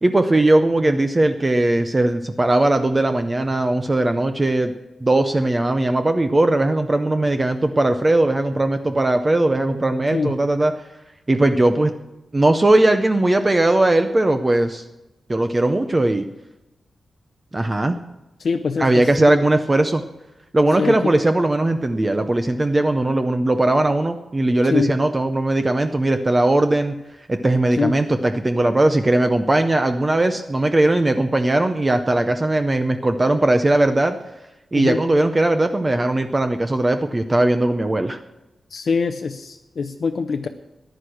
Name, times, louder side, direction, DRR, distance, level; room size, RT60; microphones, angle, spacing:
voice 1, 0.0-4.7 5.0-10.7 11.3-11.9 12.3-14.8 15.3-16.3 17.5-18.0 18.8-20.0 20.5-27.0 27.3-34.2 34.7-38.2, right 2 dB, 20° right, 7 dB, 0.6 m, -19 dB
voice 2, 18.4-19.3 20.8-21.0 24.7-24.9 27.8-27.9 34.7-35.0 38.7-40.5, left 5 dB, 50° left, 5 dB, 0.6 m, -23 dB
14.5 x 10.0 x 6.4 m, 0.98 s
wide cardioid pair, 160°, 0 cm